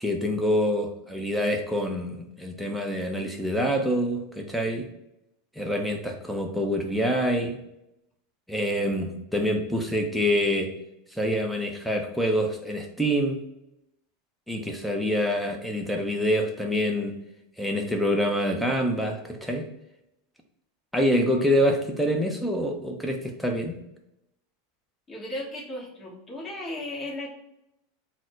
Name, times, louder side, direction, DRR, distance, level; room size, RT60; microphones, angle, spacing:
voice 1, 0.0-4.9 5.6-7.6 8.5-10.7 11.1-13.4 14.5-17.2 17.6-19.6 20.9-23.8, equal, ahead, 2 dB, 0.7 m, -26 dB
voice 2, 25.1-27.3, left 1 dB, 25° left, -4 dB, 1.5 m, -35 dB
4.0 x 2.1 x 4.5 m, 0.85 s
supercardioid pair, 115°, 0 cm